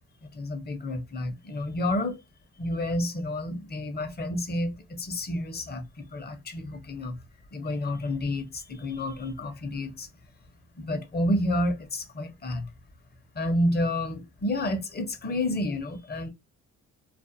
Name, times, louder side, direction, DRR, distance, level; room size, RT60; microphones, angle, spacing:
voice 1, 0.2-2.2 2.6-7.2 7.5-10.1 10.8-12.7 13.3-16.3, left 1 dB, 35° left, 0.7 m, -30 dB
2.5 x 2.2 x 2.6 m
cardioid pair, 90°, 30 cm